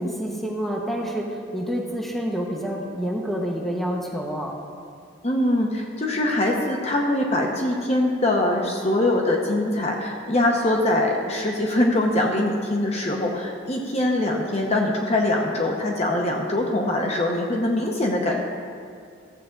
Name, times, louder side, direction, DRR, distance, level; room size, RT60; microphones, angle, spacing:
voice 1, 0.0-4.5, equal, ahead, -2 dB, 1.0 m, -28 dB
voice 2, 5.2-18.4, left 1 dB, 30° left, 0 dB, 0.8 m, -23 dB
15.0 x 7.5 x 3.8 m, 2.3 s
head